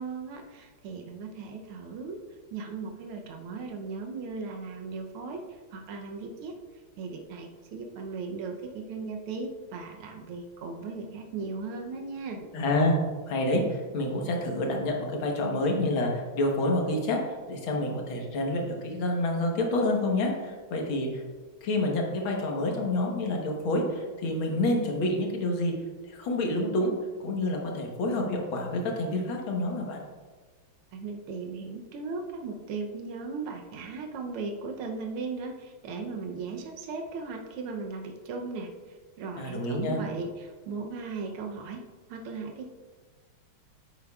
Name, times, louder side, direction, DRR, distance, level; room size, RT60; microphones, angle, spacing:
voice 1, 0.0-2.2 2.5-6.5 7.0-12.5 30.9-42.7, right 4 dB, 85° right, 3 dB, 1.7 m, -37 dB
voice 2, 12.5-13.0 13.3-17.2 17.5-21.2 21.6-25.7 26.1-26.9 27.2-30.0 39.4-40.0, left 1 dB, 75° left, 0 dB, 2.0 m, -28 dB
9.2 x 8.2 x 2.4 m, 1.4 s
omnidirectional pair, 2.3 m